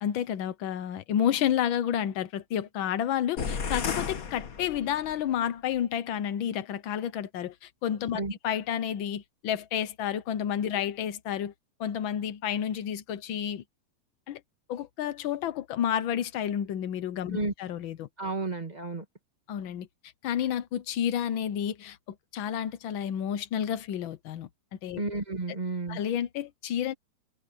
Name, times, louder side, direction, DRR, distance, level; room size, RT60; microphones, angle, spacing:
voice 1, 0.0-11.5 11.8-13.6 14.3-14.4 14.7-18.1 19.5-19.9 20.2-22.0 22.3-24.5 24.8-25.0 25.9-26.9, left 10 dB, 85° left, 1.0 m, -30 dB
sound 1, 3.4-5.2, left 5 dB, 45° left, 1.2 m, -33 dB
voice 2, 18.2-19.0 24.9-26.0, right 3 dB, 20° right, 1.5 m, -32 dB
omnidirectional pair, 3.4 m